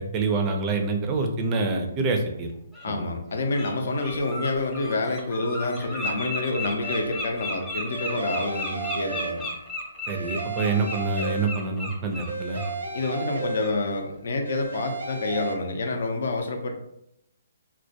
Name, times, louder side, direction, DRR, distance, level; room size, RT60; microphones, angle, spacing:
voice 1, 0.0-2.5 2.9-3.0 10.1-12.6, right 3 dB, 25° right, 4 dB, 0.4 m, -26 dB
Bird, 1.9-2.0 2.7-2.9 3.3-3.7 4.0-12.7 13.0-13.2 13.6-13.8, left 1 dB, 10° left, 0.6 m, -34 dB
voice 2, 2.8-9.4 12.9-16.7, left 2 dB, 70° left, 4 dB, 0.5 m, -28 dB
sound 1, 6.8-7.4 7.9-9.8 10.1-11.9 12.3-14.1 14.4-15.5, right 4 dB, 90° right, 0.6 m, -34 dB
2.2 x 2.1 x 2.7 m, 0.80 s
hypercardioid pair, 145°, 0 cm